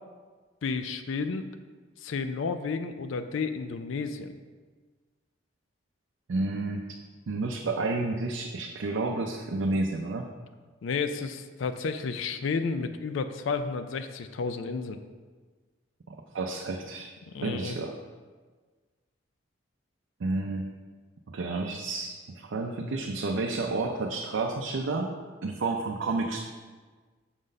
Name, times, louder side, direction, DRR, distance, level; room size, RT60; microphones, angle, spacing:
voice 1, 0.6-1.5 2.0-4.3 10.8-15.0 17.3-17.8, left 4 dB, 80° left, 9 dB, 0.4 m, -31 dB
voice 2, 6.3-6.9 7.3-10.3 16.1-17.1 17.4-18.0 20.2-20.7 21.3-25.1 25.4-26.4, right 3 dB, 75° right, 2 dB, 0.5 m, -30 dB
6.2 x 3.9 x 5.3 m, 1.4 s
head